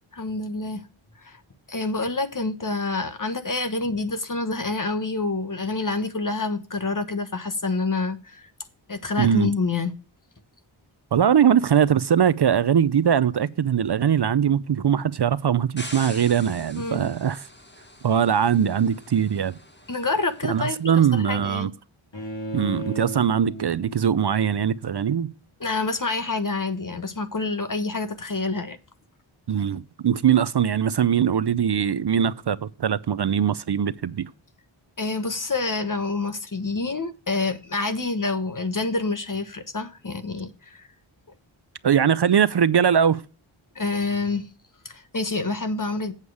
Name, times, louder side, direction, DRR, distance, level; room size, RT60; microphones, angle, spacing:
voice 1, 0.1-0.8 1.2-1.4 1.7-8.4 8.9-9.9 16.7-17.1 19.9-20.8 21.1-21.7 25.6-28.8 35.0-40.9 43.7-44.5 44.8-46.1, left 3 dB, 40° left, 1.3 m, -27 dB
voice 2, 9.2-9.5 11.1-17.5 18.0-19.6 20.4-21.7 22.5-25.3 29.5-34.3 41.8-43.2, right 8 dB, 55° right, 0.5 m, -21 dB
sound 1, 15.8-20.9, left 1 dB, 20° left, 1.8 m, -44 dB
Bowed string instrument, 22.1-25.2, right 1 dB, 60° left, 2.8 m, -36 dB
8.2 x 7.0 x 4.8 m
wide cardioid pair, 50°, 50 cm